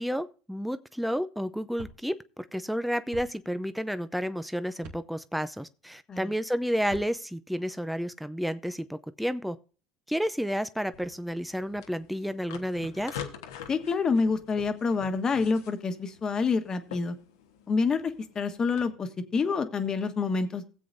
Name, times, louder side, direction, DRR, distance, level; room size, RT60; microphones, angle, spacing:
voice 1, 0.0-9.6 10.1-13.1, equal, ahead, 0.6 m, -31 dB
sound 1, 1.8-2.0 3.1-3.3 4.8-5.0 6.8-7.1, right 3 dB, 70° right, 2.3 m, -44 dB
sound 2, 10.9-18.8, left 8 dB, 85° left, 1.3 m, -46 dB
voice 2, 13.7-17.1 17.7-20.6, left 4 dB, 30° left, 1.4 m, -27 dB
17.5 x 7.8 x 2.6 m
hypercardioid pair, 85°, 2 cm